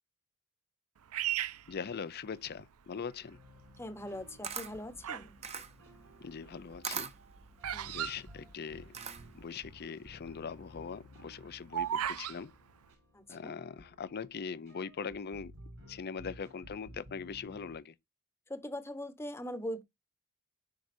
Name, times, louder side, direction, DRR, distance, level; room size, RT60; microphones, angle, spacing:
Bird vocalization bird call bird song, 1.1-2.6 3.3-3.7 4.4-5.4 5.7-9.1 9.4-9.5 9.7-10.0 10.5-12.4, right 11 dB, 85° right, 0.5 m, -37 dB
voice 1, 1.7-3.4 6.2-7.1 7.9-8.9 9.3-12.5 13.3-15.5 15.9-17.9, left 6 dB, 45° left, 0.5 m, -41 dB
sound 1, 3.3-17.8, equal, 70° right, 5.0 m, -56 dB
voice 2, 3.8-5.3 7.7-8.0 13.1-13.5 18.5-19.8, left 1 dB, 10° left, 1.0 m, -41 dB
Camera, 4.0-9.5, right 6 dB, 30° right, 0.9 m, -42 dB
10.5 x 4.9 x 2.6 m
head